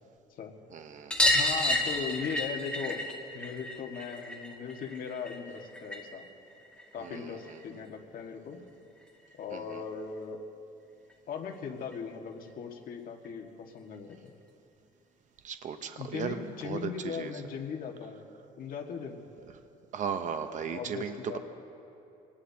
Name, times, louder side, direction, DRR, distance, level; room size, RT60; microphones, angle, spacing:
voice 1, 0.7-1.1 7.0-7.2 9.5-9.6 15.4-16.4 16.6-17.3 19.9-21.4, right 7 dB, 45° right, 7 dB, 0.9 m, -36 dB
sound 1, 1.1-6.2 6.5-7.6 9.0-9.1 9.3-9.4 9.7-9.8 11.1-11.2 11.5-11.6 11.9-12.0 13.2-13.3 14.1-14.2, left 1 dB, 5° left, 2.2 m, -31 dB
voice 2, 1.3-3.0 3.3-6.3 6.9-8.6 9.4-10.4 11.3-14.3 16.0-18.3 18.6-19.2 20.6-21.4, left 6 dB, 55° left, 2 dB, 1.8 m, -38 dB
26.5 x 19.0 x 2.9 m, 2.8 s
cardioid pair, 110°, 17 cm